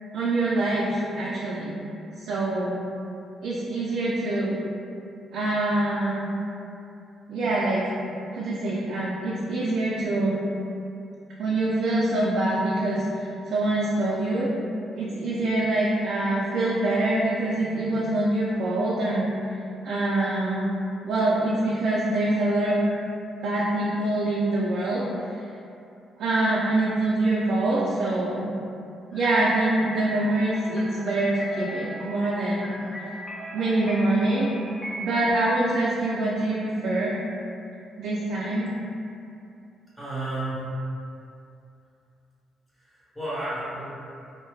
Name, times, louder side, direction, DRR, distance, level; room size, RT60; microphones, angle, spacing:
voice 1, 0.1-1.8 2.2-2.8 3.4-4.6 5.3-6.3 7.3-7.9 8.3-10.4 11.4-13.0 13.5-14.5 14.9-19.3 19.8-20.7 21.0-22.8 23.4-25.3 26.2-28.5 29.1-32.7 33.5-34.5 35.0-37.2 38.0-38.7, right 2 dB, 75° right, -7 dB, 0.3 m, -25 dB
sound 1, 29.1-35.3, equal, 20° left, 0.4 m, -38 dB
voice 2, 39.9-40.7 42.8-43.8, right 2 dB, 10° right, -12 dB, 1.0 m, -32 dB
2.6 x 2.1 x 2.2 m, 2.6 s
cardioid pair, 90°, 0 cm